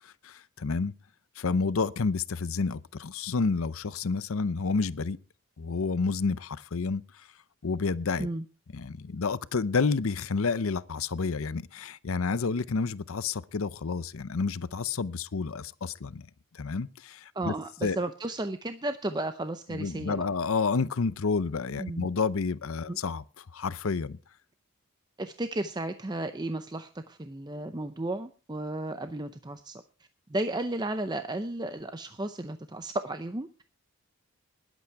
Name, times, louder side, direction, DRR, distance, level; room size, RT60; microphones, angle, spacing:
voice 1, 0.2-0.9 1.4-5.2 5.6-7.3 7.6-8.3 8.7-16.3 16.5-17.5 17.8-18.0 19.7-24.2, left 4 dB, 65° left, 0.6 m, -30 dB
voice 2, 17.3-20.2 21.8-22.1 22.9-23.0 25.2-29.8 30.3-33.6, right 2 dB, 20° right, 0.6 m, -34 dB
20.5 x 8.3 x 4.7 m
head